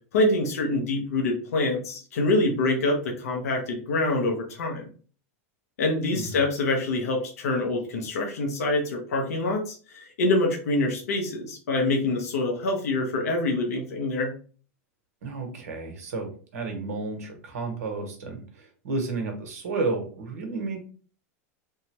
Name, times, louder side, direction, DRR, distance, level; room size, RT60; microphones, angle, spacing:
voice 1, 0.1-4.8 5.8-14.3, left 2 dB, 85° left, 1 dB, 0.9 m, -25 dB
voice 2, 15.2-20.8, right 3 dB, 85° right, 4 dB, 1.1 m, -32 dB
3.4 x 2.1 x 2.9 m, 0.40 s
supercardioid pair, 120°, 8 cm